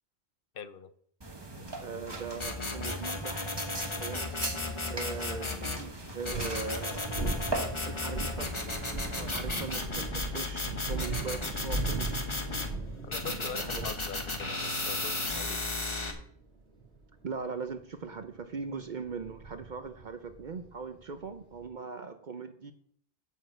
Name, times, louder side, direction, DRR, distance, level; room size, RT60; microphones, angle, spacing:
voice 1, 0.5-0.9 13.1-15.7, left 6 dB, 60° left, 12 dB, 0.9 m, -43 dB
sound 1, 1.2-9.8, right 2 dB, 25° right, 1.3 m, -41 dB
voice 2, 1.6-3.5 4.0-4.3 4.9-7.1 7.8-8.5 9.1-12.2 13.2-13.9 17.2-22.7, right 5 dB, 50° right, 9 dB, 0.7 m, -40 dB
sound 2, 2.4-5.8 6.2-12.7 13.1-16.1, left 2 dB, 30° left, 1.3 m, -35 dB
sound 3, 6.1-21.7, right 3 dB, 80° right, 1.8 m, -39 dB
7.2 x 6.2 x 7.7 m, 0.65 s
omnidirectional pair, 1.1 m